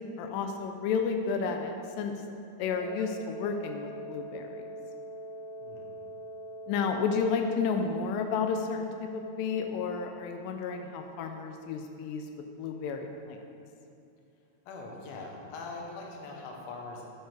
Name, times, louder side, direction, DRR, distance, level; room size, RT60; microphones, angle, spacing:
voice 1, 0.2-2.1 2.6-4.6 6.7-12.2 12.6-13.4, left 5 dB, 90° left, 5 dB, 2.0 m, -31 dB
Wind instrument woodwind instrument, 2.6-10.5, right 1 dB, 75° right, 2.0 m, -44 dB
voice 2, 14.7-17.1, left 3 dB, 70° left, -1 dB, 2.7 m, -42 dB
9.0 x 7.6 x 3.4 m, 2.6 s
omnidirectional pair, 4.6 m